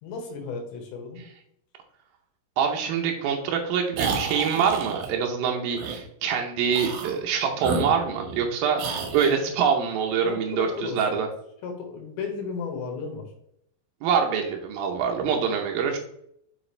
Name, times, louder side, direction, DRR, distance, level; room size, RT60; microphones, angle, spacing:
voice 1, 0.0-1.2 10.2-11.0 11.6-13.3 15.2-15.4, left 5 dB, 70° left, 3 dB, 3.6 m, -34 dB
voice 2, 2.6-11.3 14.0-16.0, right 6 dB, 85° right, 2 dB, 2.1 m, -25 dB
sound 1, 3.9-5.1 5.8-6.0 6.7-7.2 7.6-8.5 8.8-9.4, right 5 dB, 70° right, 2.4 m, -30 dB
7.6 x 6.1 x 3.2 m, 0.72 s
omnidirectional pair, 5.5 m